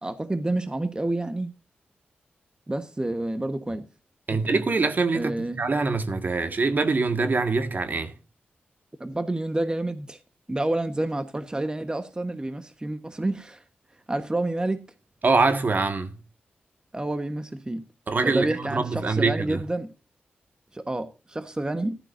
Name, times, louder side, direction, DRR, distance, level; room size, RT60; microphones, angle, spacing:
voice 1, 0.0-1.5 2.7-3.9 4.3-4.4 5.1-5.6 9.0-10.2 10.5-13.6 14.1-14.8 16.9-17.8 18.2-19.9 20.7-22.0, right 2 dB, 20° right, 1.2 m, -29 dB
voice 2, 4.3-8.1 15.2-16.2 18.1-19.6, right 3 dB, 50° right, 1.7 m, -24 dB
14.5 x 12.5 x 2.6 m
cardioid pair, 55°, 4 cm